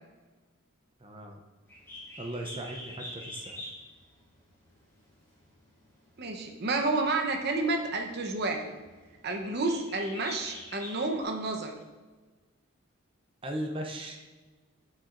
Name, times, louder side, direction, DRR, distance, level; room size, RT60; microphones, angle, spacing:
voice 1, 1.0-1.4 2.2-3.6 13.4-14.2, right 1 dB, 25° right, 3 dB, 0.6 m, -37 dB
Bird, 1.7-11.2, left 1 dB, 10° left, 2.4 m, -46 dB
voice 2, 6.2-8.7 9.2-11.7, right 3 dB, 50° right, 3 dB, 0.9 m, -30 dB
7.5 x 7.4 x 2.6 m, 1.3 s
head